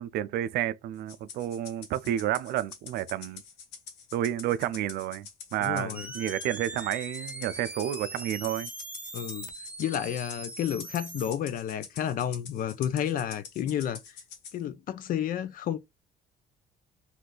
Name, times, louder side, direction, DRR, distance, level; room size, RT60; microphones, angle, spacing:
voice 1, 0.0-3.4 4.1-8.7, right 12 dB, 70° right, 0.4 m, -30 dB
Rattle (instrument), 1.1-14.6, left 6 dB, 85° left, 0.9 m, -46 dB
voice 2, 5.6-6.1 9.1-9.5 9.8-14.2 14.5-15.8, left 10 dB, 55° left, 0.4 m, -31 dB
sound 1, 5.9-11.3, right 2 dB, 10° right, 0.5 m, -41 dB
2.6 x 2.3 x 3.7 m
cardioid pair, 110°, 17 cm